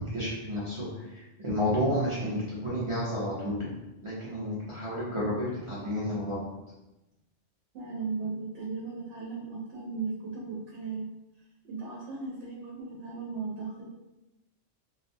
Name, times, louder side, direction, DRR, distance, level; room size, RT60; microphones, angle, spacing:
voice 1, 0.1-3.6 4.0-6.5, equal, 45° right, -8 dB, 0.4 m, -31 dB
voice 2, 7.7-11.1 11.6-13.8, right 4 dB, 75° right, -4 dB, 0.9 m, -36 dB
2.3 x 2.1 x 2.6 m, 0.97 s
omnidirectional pair, 1.2 m